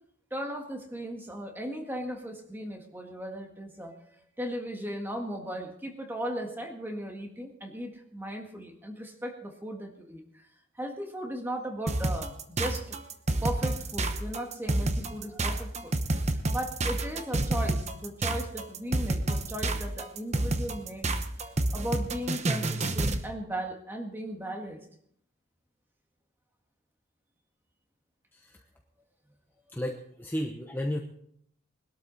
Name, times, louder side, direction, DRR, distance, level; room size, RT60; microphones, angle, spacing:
voice 1, 0.3-4.1 4.4-10.4 10.8-21.1 21.4-24.8, equal, 10° right, 3 dB, 1.8 m, -37 dB
sound 1, 11.9-23.2, right 2 dB, 30° right, 0.9 m, -29 dB
voice 2, 28.3-28.6 29.7-31.0, equal, 10° left, 2 dB, 0.9 m, -33 dB
21.0 x 12.5 x 4.2 m, 0.68 s
head